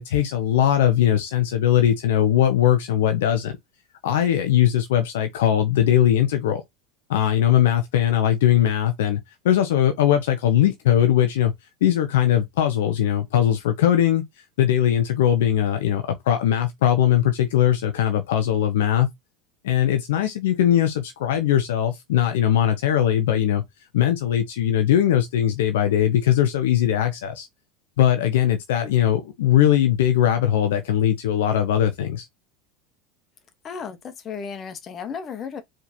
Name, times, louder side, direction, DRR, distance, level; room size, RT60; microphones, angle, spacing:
voice 1, 0.0-3.5 4.0-6.6 7.1-9.2 9.4-11.5 11.8-14.2 14.6-19.1 19.6-23.6 23.9-27.5 28.0-32.3, left 11 dB, 70° left, 0.8 m, -20 dB
voice 2, 33.6-35.6, left 6 dB, 35° left, 1.2 m, -34 dB
4.6 x 3.7 x 2.8 m
figure-of-eight pair, 75°, 0 cm